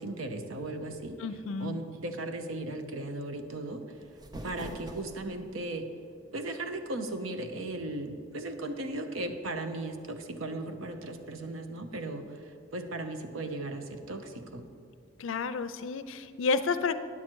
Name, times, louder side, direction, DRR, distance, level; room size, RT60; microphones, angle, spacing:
voice 1, 0.0-1.2 1.6-3.8 4.4-5.9 6.3-12.4 12.7-14.6, right 2 dB, 90° right, 7 dB, 0.8 m, -36 dB
voice 2, 1.2-1.8 15.2-16.9, left 4 dB, 75° left, 12 dB, 0.5 m, -31 dB
sound 1, 3.9-5.5, right 1 dB, 20° right, 0.6 m, -44 dB
9.6 x 7.5 x 4.6 m, 2.2 s
head